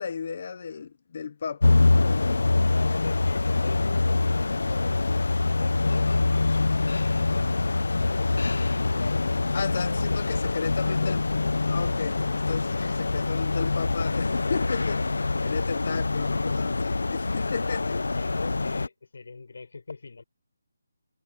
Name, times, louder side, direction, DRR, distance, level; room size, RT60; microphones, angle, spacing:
voice 1, 0.0-1.8 9.5-11.2 11.7-17.8, left 6 dB, 35° left, 1.1 m, -34 dB
sound 1, 1.6-18.9, left 3 dB, 85° left, 0.8 m, -25 dB
voice 2, 2.5-6.6 6.8-11.1 12.7-13.2 16.6-20.2, left 4 dB, 60° left, 6.4 m, -41 dB
hypercardioid pair, 175°, 0 cm